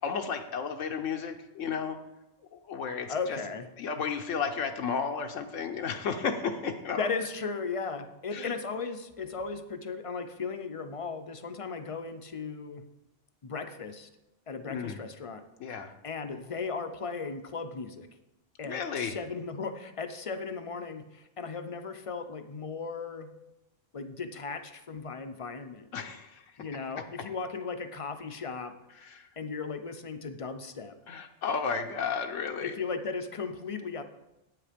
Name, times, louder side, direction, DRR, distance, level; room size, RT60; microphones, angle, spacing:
voice 1, 0.0-2.0 2.5-3.4 3.8-7.1 8.3-8.5 14.7-15.0 15.6-15.9 18.6-19.2 25.9-26.5 29.0-29.3 31.1-32.8, left 6 dB, 80° left, 4 dB, 1.1 m, -33 dB
voice 2, 3.1-3.7 7.0-12.9 13.4-14.1 14.5-15.4 16.0-18.1 18.6-23.3 23.9-25.9 26.6-28.7 29.4-31.0 32.6-34.0, left 4 dB, 40° left, 8 dB, 0.5 m, -36 dB
8.6 x 7.7 x 5.1 m, 0.95 s
omnidirectional pair, 1.3 m